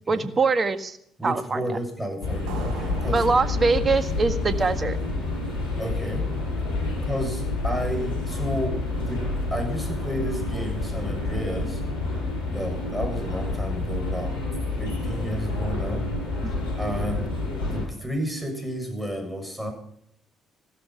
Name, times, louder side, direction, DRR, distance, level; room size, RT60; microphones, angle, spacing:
voice 1, 0.1-1.0 1.2-1.6 3.1-5.0 16.4-16.5, right 4 dB, 35° right, 11 dB, 1.7 m, -23 dB
voice 2, 1.2-3.3 5.8-6.3 7.0-11.8 12.5-14.3 14.8-16.1 16.8-17.3 17.6-19.7, equal, 5° right, 5 dB, 7.0 m, -31 dB
sound 1, 2.2-17.9, left 2 dB, 85° left, 6.8 m, -28 dB
sound 2, 2.5-5.8, right 5 dB, 65° right, 6.0 m, -42 dB
15.5 x 13.0 x 5.9 m, 0.68 s
hypercardioid pair, 50°, 0 cm